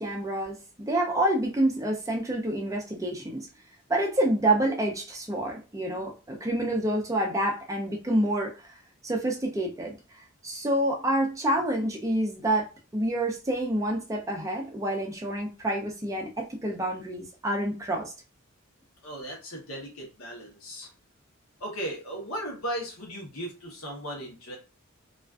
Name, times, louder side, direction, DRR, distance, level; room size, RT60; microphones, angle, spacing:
voice 1, 0.0-3.5 3.9-8.7 9.0-9.9 10.4-12.7 12.9-18.1, right 1 dB, 15° right, 0.3 m, -28 dB
voice 2, 19.0-20.9 21.6-24.6, right 1 dB, 90° left, 0.8 m, -36 dB
2.4 x 2.3 x 2.2 m
head